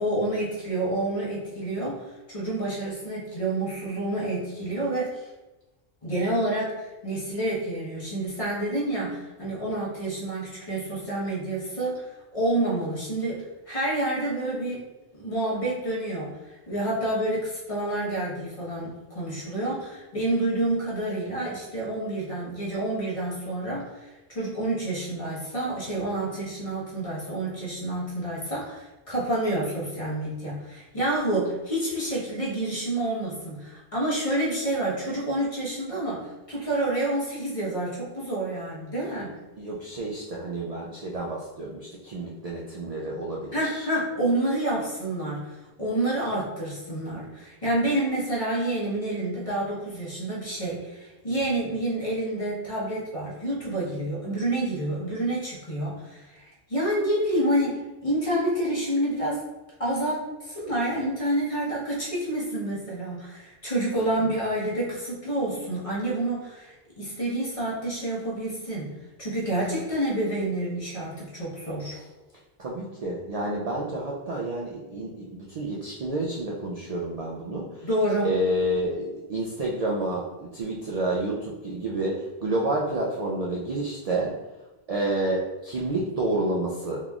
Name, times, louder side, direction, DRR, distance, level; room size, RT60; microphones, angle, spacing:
voice 1, 0.0-5.3 6.0-12.0 12.3-14.8 15.1-39.4 43.5-59.4 59.8-68.9 69.2-71.9 77.8-78.3, right 1 dB, 35° left, -7 dB, 1.0 m, -28 dB
voice 2, 39.6-43.9 64.0-64.3 71.9-72.0 72.6-77.9 78.2-84.3 84.9-87.0, right 1 dB, 55° right, -4 dB, 0.4 m, -29 dB
3.8 x 3.0 x 2.3 m, 1.1 s
omnidirectional pair, 1.1 m